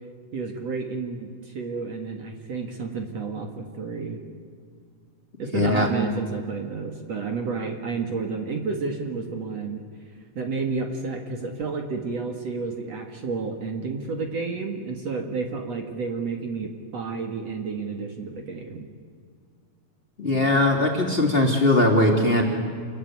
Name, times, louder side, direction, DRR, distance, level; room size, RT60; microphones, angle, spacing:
voice 1, 0.3-4.2 5.4-9.8 10.4-18.9, right 4 dB, 55° right, 3 dB, 2.8 m, -31 dB
voice 2, 5.5-5.9 20.2-22.4, left 1 dB, 15° left, 1 dB, 3.2 m, -20 dB
28.5 x 21.5 x 9.6 m, 2.1 s
omnidirectional pair, 3.9 m